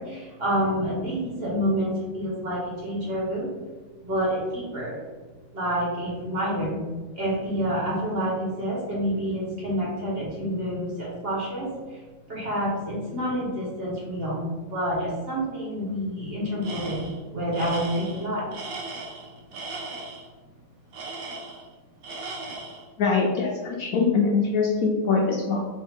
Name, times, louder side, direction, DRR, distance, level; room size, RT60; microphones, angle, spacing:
voice 1, 0.0-3.5 4.0-5.0 5.5-6.8 7.2-11.7 12.3-17.1 17.3-18.5, equal, 40° right, -5 dB, 1.2 m, -28 dB
Tools, 16.6-17.2 17.5-20.3 20.9-21.7 22.0-22.9, right 3 dB, 65° right, 1.0 m, -37 dB
voice 2, 23.0-25.6, left 4 dB, 70° left, -1 dB, 0.9 m, -23 dB
3.6 x 3.1 x 3.4 m, 1.3 s
omnidirectional pair, 1.8 m